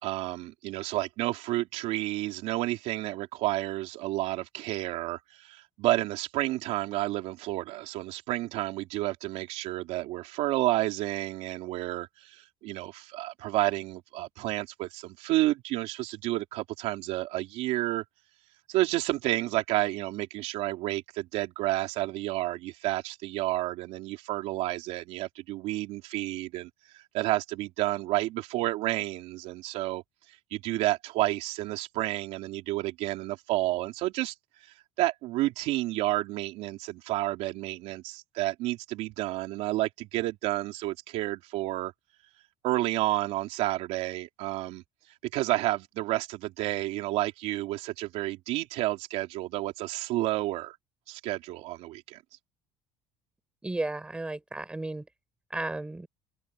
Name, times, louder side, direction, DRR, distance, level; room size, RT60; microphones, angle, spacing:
voice 1, 0.0-18.0 18.7-34.3 34.6-41.9 42.6-44.8 45.3-50.8 51.1-52.2, right 17 dB, 70° right, 3.3 m, -30 dB
voice 2, 53.6-55.1 55.5-56.1, right 2 dB, 10° right, 7.1 m, -34 dB
cardioid pair, 150°, 12 cm